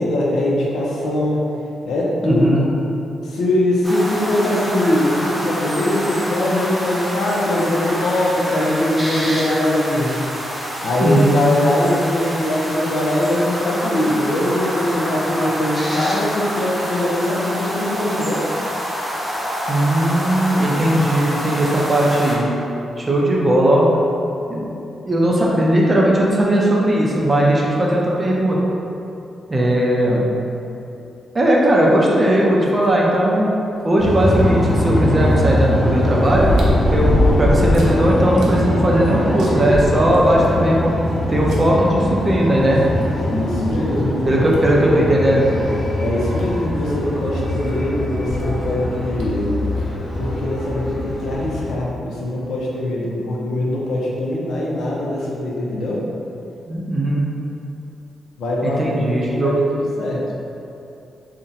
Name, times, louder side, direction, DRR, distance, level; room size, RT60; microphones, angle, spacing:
voice 1, 0.0-1.4 1.8-2.7 3.2-10.1 10.8-18.4 43.3-44.4 46.0-49.5 49.8-49.9 50.2-56.0 58.4-60.2, left 1 dB, 75° left, -4 dB, 0.5 m, -21 dB
voice 2, 2.2-2.6 11.0-11.4 19.7-22.5 23.0-23.9 24.5-24.7 25.0-28.6 29.5-30.2 31.3-33.5 33.8-36.5 36.9-40.9 41.3-42.8 44.3-45.5 56.7-57.3 58.6-59.5, right 1 dB, 20° right, -3 dB, 0.4 m, -17 dB
sound 1, 3.8-22.4, equal, 5° left, 0.8 m, -27 dB
sound 2, 34.0-51.8, left 1 dB, 45° left, 0.8 m, -22 dB
sound 3, 34.3-34.4 36.3-38.0 38.4-38.5 38.9-39.0 39.4-40.5 41.5-41.6 43.0-43.1 43.7-43.8 44.5-44.7 46.1-46.2 46.4-46.5 48.2-48.5 49.2-49.3, equal, 75° right, 0.5 m, -20 dB
2.7 x 2.1 x 3.8 m, 2.8 s
wide cardioid pair, 140°, 0 cm